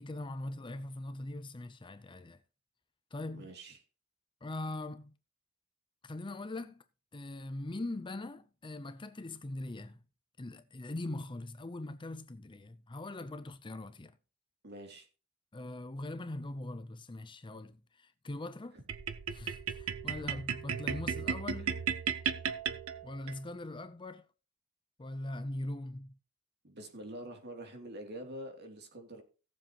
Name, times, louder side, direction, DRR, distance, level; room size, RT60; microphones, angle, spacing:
voice 1, 0.0-2.4 3.1-3.5 4.4-5.1 6.0-6.8 7.1-10.0 10.4-14.2 15.5-18.8 19.3-21.8 23.0-24.3 25.0-26.2, left 2 dB, 25° left, 0.6 m, -41 dB
voice 2, 3.3-3.8 14.6-15.1 18.7-18.8 26.6-29.2, right 1 dB, 50° right, 2.8 m, -46 dB
sound 1, 18.9-23.4, right 7 dB, 70° right, 0.9 m, -35 dB
17.5 x 7.5 x 3.0 m
head